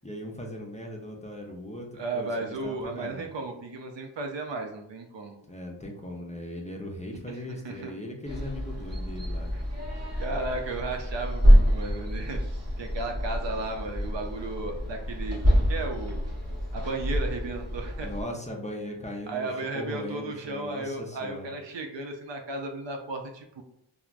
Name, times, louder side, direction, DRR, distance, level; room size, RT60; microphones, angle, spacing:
voice 1, 0.0-3.3 5.5-9.5 18.0-21.5, left 1 dB, 15° left, -1 dB, 0.5 m, -39 dB
voice 2, 2.0-5.4 7.3-7.4 7.6-7.9 9.5-9.6 10.2-12.4 12.8-16.2 16.7-18.1 19.3-23.6, right 2 dB, 65° right, 4 dB, 0.6 m, -34 dB
sound 1, 8.2-18.2, equal, 30° right, 1.0 m, -26 dB
3.1 x 2.0 x 2.4 m, 0.78 s
cardioid pair, 40°, 48 cm